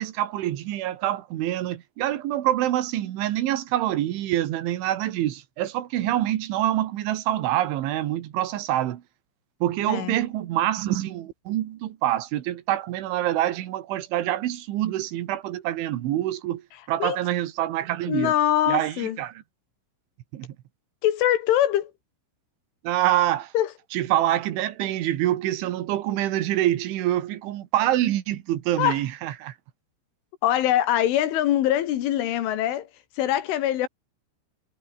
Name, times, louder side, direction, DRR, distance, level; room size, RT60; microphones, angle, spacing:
voice 1, 0.0-9.0 9.6-16.6 16.9-18.3 18.7-19.3 20.3-20.6 22.8-23.5 23.9-29.5, right 13 dB, 75° right, 4.0 m, -26 dB
voice 2, 9.9-10.2 17.0-17.2 18.1-19.2 21.0-21.9 23.5-23.7 28.8-29.0 30.4-32.9 33.2-33.9, left 12 dB, 80° left, 4.3 m, -23 dB
omnidirectional pair, 5.5 m